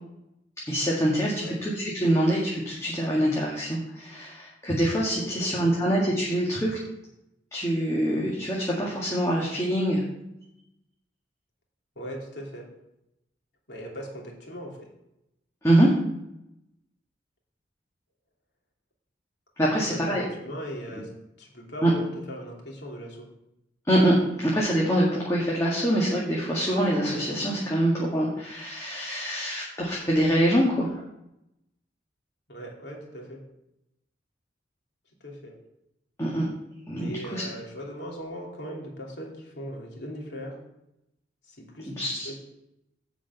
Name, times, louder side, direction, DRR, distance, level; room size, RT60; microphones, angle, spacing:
voice 1, 0.7-6.8 7.5-10.0 15.6-15.9 19.6-20.2 21.8-21.9 23.9-24.2 24.4-30.9 36.2-36.5 36.9-37.4 41.9-42.3, right 1 dB, 15° left, -5 dB, 2.0 m, -24 dB
voice 2, 5.2-5.8 11.9-12.7 13.7-14.9 19.7-21.1 21.4-23.3 32.5-33.4 35.2-35.6 36.9-40.6 41.5-42.4, equal, 70° left, -1 dB, 3.1 m, -39 dB
10.0 x 5.1 x 8.2 m, 0.84 s
head